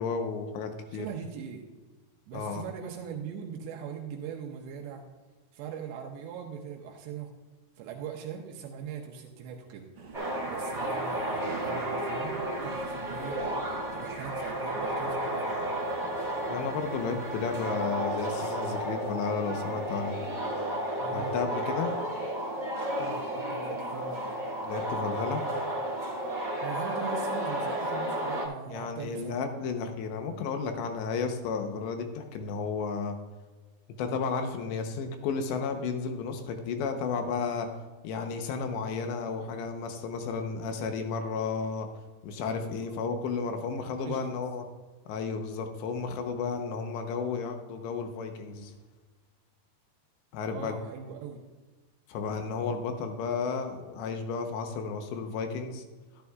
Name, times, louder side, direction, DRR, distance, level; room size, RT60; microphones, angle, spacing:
voice 1, 0.0-1.1 2.3-2.6 16.5-20.2 21.1-21.9 24.6-25.5 28.7-33.2 34.0-37.7 38.0-41.9 42.2-44.7 45.1-48.7 50.3-50.7 52.1-55.8, left 5 dB, 85° left, 5 dB, 3.2 m, -33 dB
voice 2, 0.9-1.6 2.3-5.0 5.5-7.3 7.8-9.9 10.5-15.6 21.0-21.3 23.0-24.3 26.6-29.4 42.8-43.0 43.7-44.3 50.5-51.4, right 7 dB, 85° right, 1 dB, 3.1 m, -41 dB
sound 1, 9.9-17.7, right 3 dB, 50° right, 3.6 m, -48 dB
sound 2, 10.1-28.5, right 1 dB, 20° right, 1.6 m, -32 dB
12.5 x 12.0 x 2.4 m, 1.3 s
omnidirectional pair, 4.9 m